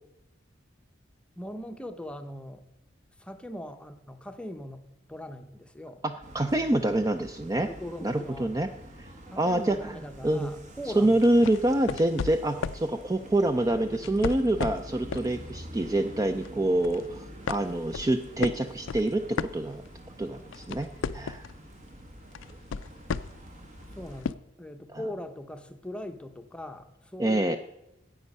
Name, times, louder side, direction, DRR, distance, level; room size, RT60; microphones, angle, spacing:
voice 1, 1.4-2.6 3.2-4.8 5.1-6.0 7.6-8.6 9.3-11.2 23.9-24.3 24.6-27.6, left 1 dB, 5° left, 7 dB, 0.7 m, -40 dB
voice 2, 6.0-7.7 8.0-8.7 9.0-9.1 9.4-9.9 10.2-10.5 11.0-19.8 20.2-20.9 21.1-21.4 24.9-25.0 27.2-27.6, right 1 dB, 20° right, 8 dB, 0.4 m, -26 dB
sound 1, 6.2-24.2, right 1 dB, 40° right, 1.4 m, -46 dB
sound 2, 11.2-12.9 13.9-15.3 15.7-16.0 16.4-17.1 17.5-20.1 20.4-21.6 22.3-23.5 24.2-24.3, left 5 dB, 75° left, 0.4 m, -34 dB
9.8 x 8.1 x 5.4 m, 0.90 s
head